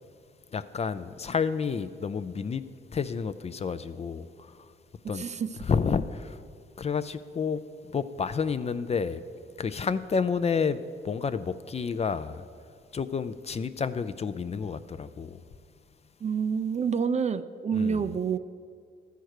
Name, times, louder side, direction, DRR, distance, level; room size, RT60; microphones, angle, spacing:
voice 1, 0.5-2.6 2.9-4.3 5.1-5.2 5.6-6.4 6.8-7.6 7.9-9.2 9.6-10.8 11.0-12.4 12.9-15.4 17.7-18.0, left 5 dB, 35° left, 12 dB, 0.4 m, -30 dB
voice 2, 5.0-5.5 16.2-18.4, right 6 dB, 35° right, 13 dB, 0.4 m, -28 dB
13.0 x 4.6 x 6.5 m, 2.2 s
cardioid pair, 90°, 20 cm